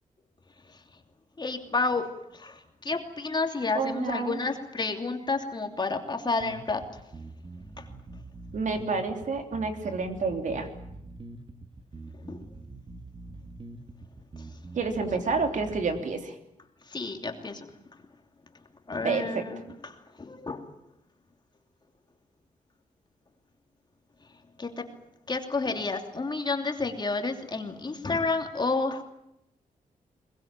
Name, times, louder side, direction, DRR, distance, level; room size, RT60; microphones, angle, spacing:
voice 1, 1.4-6.9 7.8-7.9 12.3-12.4 14.4-14.5 15.1-15.2 16.9-17.7 18.9-20.6 24.6-24.9 25.3-29.0, left 3 dB, 30° left, 4 dB, 2.9 m, -30 dB
voice 2, 3.7-4.4 8.5-10.7 14.7-16.3 19.0-19.4, right 4 dB, 60° right, 5 dB, 3.2 m, -29 dB
sound 1, 6.4-16.0, right 2 dB, 35° right, 2.0 m, -44 dB
22.5 x 21.0 x 9.0 m, 0.83 s
cardioid pair, 110°, 15 cm